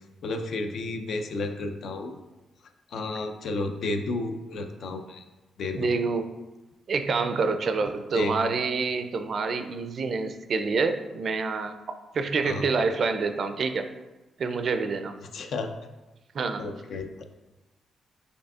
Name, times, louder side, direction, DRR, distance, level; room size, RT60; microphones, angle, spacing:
voice 1, 0.2-2.2 2.9-5.2 5.6-5.9 8.1-8.6 12.4-12.7 15.3-15.7 16.6-17.2, left 2 dB, 70° left, 6 dB, 0.4 m, -32 dB
voice 2, 5.7-6.3 6.9-11.7 12.1-13.9 14.4-15.1 16.3-16.6, right 4 dB, 60° right, 8 dB, 0.4 m, -27 dB
6.4 x 2.7 x 2.4 m, 1.1 s
supercardioid pair, 55°, 0 cm